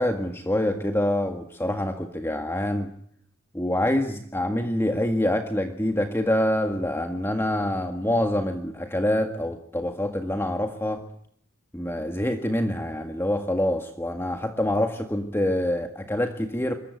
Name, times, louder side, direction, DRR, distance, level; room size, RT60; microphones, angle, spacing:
voice 1, 0.0-2.9 3.5-11.0 11.7-16.7, left 1 dB, 10° left, 5 dB, 1.8 m, -26 dB
26.0 x 22.5 x 9.4 m, 0.65 s
head